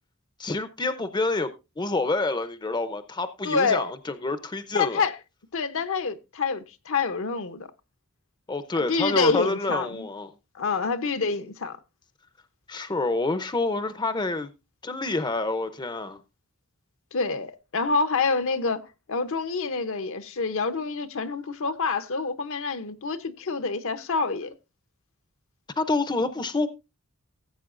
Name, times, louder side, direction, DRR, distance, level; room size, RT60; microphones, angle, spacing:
voice 1, 0.4-1.5 1.8-5.0 8.5-10.3 12.7-14.5 14.8-16.2 25.8-26.7, left 2 dB, 20° left, 0.6 m, -27 dB
voice 2, 3.4-3.9 4.7-5.1 5.5-7.7 8.8-10.1 10.5-11.8 17.1-24.5, left 4 dB, 60° left, 0.8 m, -27 dB
16.5 x 7.9 x 2.5 m
head